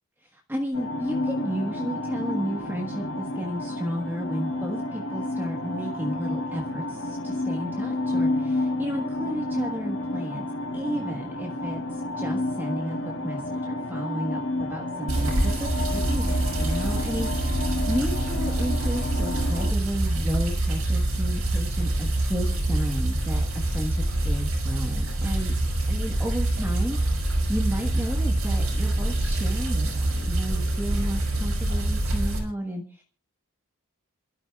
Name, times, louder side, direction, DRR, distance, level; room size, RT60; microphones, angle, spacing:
voice 1, 0.2-10.4 10.7-25.5 25.9-27.0 27.2-33.0, equal, 10° right, 1 dB, 1.4 m, -33 dB
sound 1, 0.7-19.7, left 1 dB, 70° left, 3.6 m, -30 dB
sound 2, 15.1-32.4, right 1 dB, 80° right, 5.4 m, -25 dB
27.5 x 13.0 x 2.4 m, 0.41 s
head